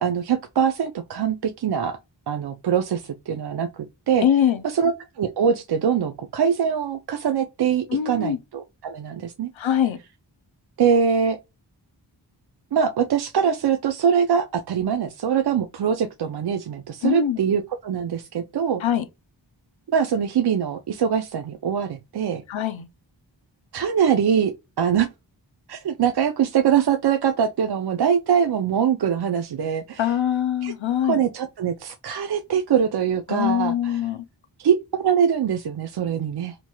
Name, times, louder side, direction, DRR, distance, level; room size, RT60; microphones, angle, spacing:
voice 1, 0.0-2.0 2.3-4.3 4.6-9.5 10.8-11.4 12.7-18.8 19.9-22.4 23.7-25.1 25.7-30.1 30.6-30.7 31.0-34.0 34.6-36.6, right 7 dB, 60° right, 0.5 m, -23 dB
voice 2, 4.2-4.6 7.9-8.4 9.6-10.0 17.0-17.4 18.8-19.0 22.5-22.9 30.0-31.2 33.3-34.2, left 10 dB, 85° left, 0.6 m, -23 dB
2.9 x 2.8 x 2.2 m
wide cardioid pair, 40°, 46 cm